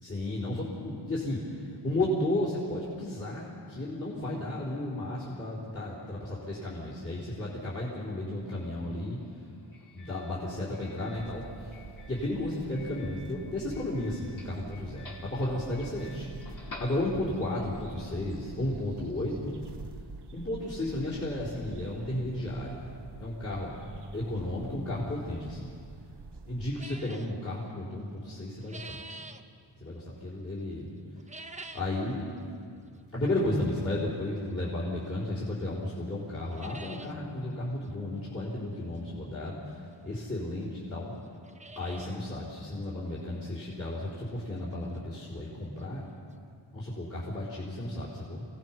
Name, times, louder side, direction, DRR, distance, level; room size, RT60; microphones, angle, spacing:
voice 1, 0.0-9.4 9.9-11.8 12.1-19.6 20.3-23.8 24.1-25.8 26.5-29.0 29.8-30.9 31.7-32.3 33.1-41.1 41.8-46.0 46.7-48.4, left 1 dB, 30° left, -7 dB, 4.1 m, -33 dB
Doorbell, 8.5-17.5, left 2 dB, 55° left, 4.8 m, -51 dB
sound 1, 11.1-26.7, right 4 dB, 65° right, 1.1 m, -47 dB
sound 2, 26.8-27.3 28.3-29.4 31.1-32.0 32.4-32.5 33.3-33.4 35.1-35.2 35.6-35.7 36.0-36.1 36.3-37.1 37.5-37.6 37.8-37.9 39.5-39.6 40.3-40.4 40.6-40.7 41.2-42.2 42.6-42.7 43.2-43.3 43.7-43.8 45.5-45.6 45.8-45.9 46.3-46.4, right 2 dB, 15° right, 0.8 m, -46 dB
29.0 x 18.0 x 6.0 m, 2.3 s
wide cardioid pair, 170°, 44 cm